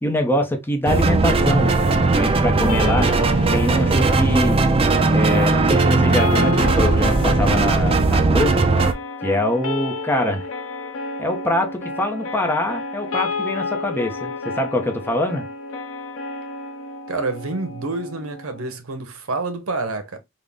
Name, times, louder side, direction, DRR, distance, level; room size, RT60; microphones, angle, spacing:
voice 1, 0.0-1.9 2.2-3.1 3.5-4.6 5.1-8.7 9.2-10.5 11.2-15.4, left 1 dB, 10° left, 0.6 m, -24 dB
sound 1, 0.9-8.9, right 3 dB, 25° right, 0.4 m, -18 dB
sound 2, 2.7-18.7, left 3 dB, 65° left, 0.7 m, -31 dB
voice 2, 17.1-20.2, right 3 dB, 85° right, 0.8 m, -28 dB
3.9 x 2.1 x 3.4 m
head